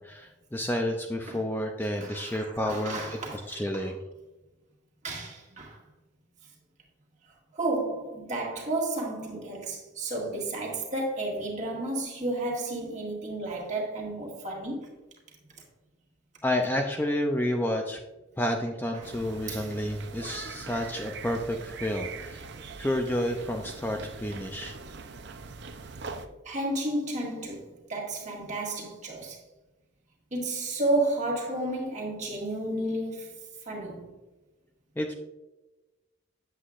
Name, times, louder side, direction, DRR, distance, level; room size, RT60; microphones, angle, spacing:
voice 1, 0.0-3.2 3.5-4.0 16.4-18.0 18.4-22.5 22.8-24.7 35.0-35.1, left 1 dB, 10° left, 0.4 m, -30 dB
voice 2, 1.8-3.9 5.0-5.8 7.5-14.9 18.9-19.1 19.5-19.7 26.4-29.4 30.3-33.4 33.6-34.1, right 2 dB, 35° right, 1.8 m, -32 dB
sound 1, 19.0-26.3, right 4 dB, 55° right, 0.5 m, -42 dB
8.3 x 7.7 x 2.4 m
head